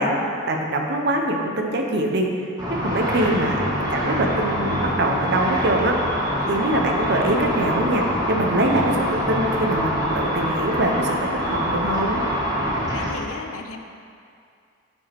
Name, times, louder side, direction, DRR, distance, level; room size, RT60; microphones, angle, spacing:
voice 1, 0.0-6.2 6.5-12.2, right 1 dB, 55° right, 2 dB, 0.7 m, -23 dB
Car / Traffic noise roadway noise / Engine, 2.6-13.1, equal, 20° right, 1.2 m, -25 dB
voice 2, 12.9-13.8, left 4 dB, 85° left, 6 dB, 0.5 m, -35 dB
9.3 x 4.8 x 3.4 m, 2.4 s
head